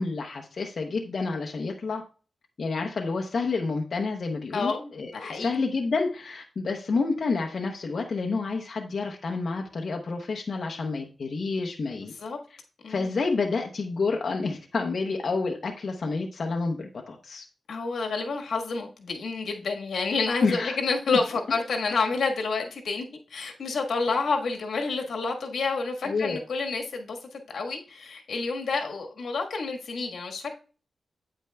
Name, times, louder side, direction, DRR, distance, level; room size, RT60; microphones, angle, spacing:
voice 1, 0.0-2.0 2.6-12.1 12.9-17.4 20.4-20.8 26.0-26.4, left 4 dB, 55° left, 1 dB, 0.8 m, -29 dB
voice 2, 4.5-5.6 12.2-12.4 12.8-13.1 17.7-23.0 23.3-30.5, left 4 dB, 80° left, 2 dB, 1.4 m, -29 dB
8.7 x 8.6 x 2.2 m, 0.37 s
wide cardioid pair, 145°, 0 cm